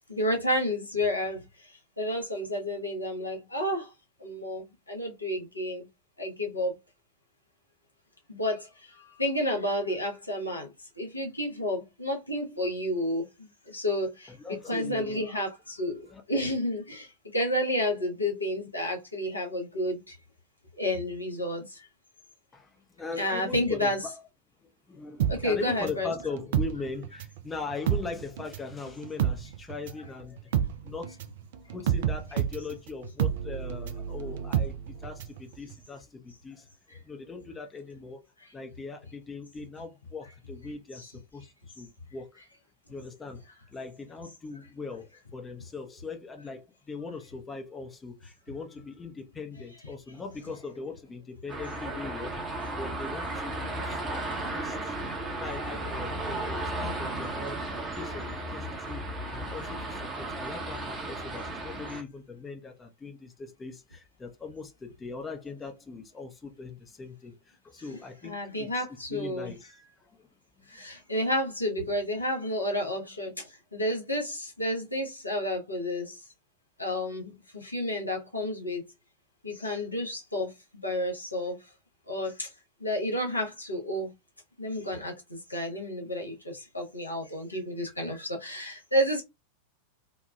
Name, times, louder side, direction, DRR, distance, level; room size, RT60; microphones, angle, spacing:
voice 1, 0.1-1.4 2.0-3.9 4.2-5.8 6.2-6.7 8.3-8.7 9.2-10.7 11.0-13.2 13.7-17.1 17.3-20.1 20.8-21.6 23.2-24.0 25.3-26.1 41.0-41.1 68.2-69.5 70.7-73.3 73.7-76.1 76.8-78.8 79.4-80.5 80.8-81.6 82.1-82.5 82.8-84.1 84.6-89.2, left 1 dB, 85° left, 0.8 m, -30 dB
voice 2, 14.3-15.4 16.0-16.2 22.5-24.1 24.6-30.5 30.8-31.2 31.6-38.2 38.5-42.4 42.9-43.4 43.7-55.0 55.3-70.3, left 4 dB, 15° left, 0.5 m, -40 dB
sound 1, 25.2-27.4 27.7-35.4 35.7-35.8, right 9 dB, 55° right, 0.3 m, -29 dB
sound 2, 51.5-62.0, right 2 dB, 20° right, 0.8 m, -34 dB
3.0 x 2.2 x 2.2 m
figure-of-eight pair, 90°, 0 cm